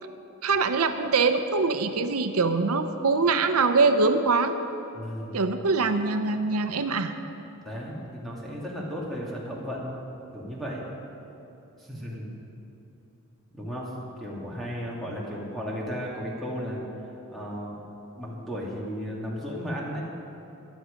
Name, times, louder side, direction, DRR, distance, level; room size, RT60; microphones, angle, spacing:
voice 1, 0.4-4.5 5.3-7.1 12.1-12.4, right 4 dB, 85° right, 8 dB, 0.7 m, -23 dB
voice 2, 4.9-5.4 7.6-10.0 10.3-10.8 11.8-12.3 13.5-13.9 14.2-16.8 17.3-17.8 18.2-20.0, equal, ahead, -5 dB, 2.2 m, -34 dB
15.5 x 11.0 x 5.2 m, 3.0 s
head